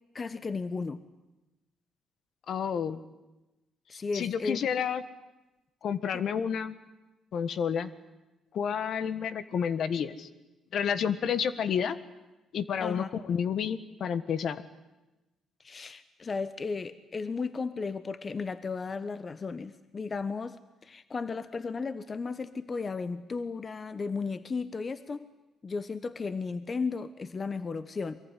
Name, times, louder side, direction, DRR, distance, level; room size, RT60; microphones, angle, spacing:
voice 1, 0.1-1.0 3.9-4.6 12.8-13.2 15.6-25.3 25.6-28.2, left 4 dB, 35° left, 13 dB, 1.0 m, -35 dB
voice 2, 2.5-3.0 4.1-5.0 5.8-6.7 7.3-7.9 8.5-10.3 10.7-12.0 12.5-14.6, left 7 dB, 65° left, 13 dB, 1.5 m, -30 dB
24.0 x 22.5 x 10.0 m, 1.0 s
cardioid pair, 90°, 0 cm